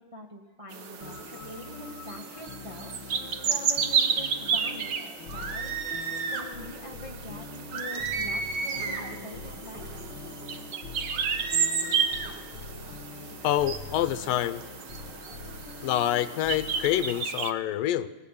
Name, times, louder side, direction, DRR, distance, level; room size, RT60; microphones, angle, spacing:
voice 1, 0.0-9.9, left 1 dB, 10° right, 0 dB, 2.3 m, -44 dB
sound 1, 0.7-17.5, right 6 dB, 60° right, 1.1 m, -32 dB
sound 2, 1.0-17.2, left 5 dB, 50° left, 1.7 m, -44 dB
sound 3, 5.3-6.5 7.7-9.1 11.1-12.3, right 4 dB, 75° right, 4.0 m, -33 dB
voice 2, 13.4-14.6 15.8-18.1, left 12 dB, 85° left, 13 dB, 2.7 m, -26 dB
25.5 x 19.5 x 8.7 m, 1.2 s
omnidirectional pair, 3.9 m